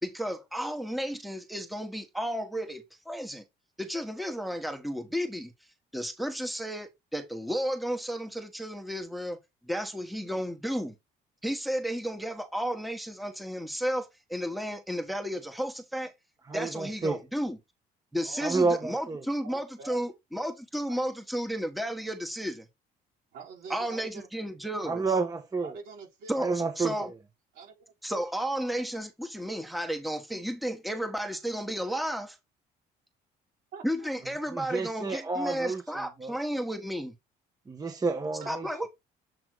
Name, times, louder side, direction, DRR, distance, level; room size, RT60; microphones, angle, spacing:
voice 1, 0.0-3.4 3.8-5.5 5.9-9.4 9.6-10.9 11.4-16.1 16.5-17.6 18.1-22.7 23.7-25.0 26.3-27.1 28.0-32.4 33.8-37.1 38.5-38.9, equal, ahead, 1.4 m, -33 dB
voice 2, 16.5-17.3 18.4-19.3 24.8-25.8 26.4-27.2 34.5-36.4 37.7-38.8, right 4 dB, 20° right, 1.1 m, -30 dB
voice 3, 18.2-18.8 19.2-20.1 20.9-21.0 23.3-24.3 25.6-26.3 27.5-28.3 33.7-34.1 38.4-38.8, right 6 dB, 75° right, 4.1 m, -45 dB
7.7 x 3.4 x 4.8 m
cardioid pair, 110°, 17 cm